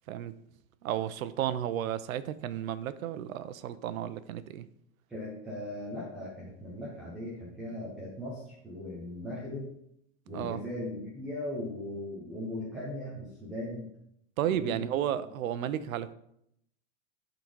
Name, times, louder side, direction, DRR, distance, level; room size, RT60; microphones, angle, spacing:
voice 1, 0.8-4.7 10.3-10.6 14.4-16.1, right 10 dB, 90° right, 14 dB, 0.8 m, -33 dB
voice 2, 5.1-9.7 10.3-13.9 14.4-14.8, left 1 dB, ahead, -6 dB, 0.3 m, -38 dB
11.5 x 4.0 x 4.7 m, 0.76 s
supercardioid pair, 165°, 40 cm